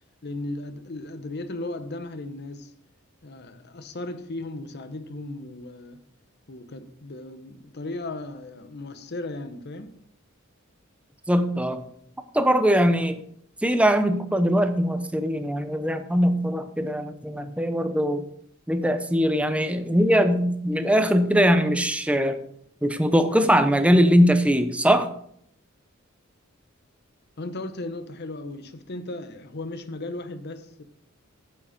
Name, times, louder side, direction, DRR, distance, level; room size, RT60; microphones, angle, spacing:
voice 1, 0.2-2.7 3.2-6.0 6.5-10.0 27.4-30.8, left 2 dB, 55° left, 0.8 m, -36 dB
voice 2, 11.3-11.8 12.3-13.2 13.6-18.2 18.7-22.4 22.8-25.1, equal, 5° right, 0.7 m, -21 dB
8.5 x 7.6 x 5.2 m
head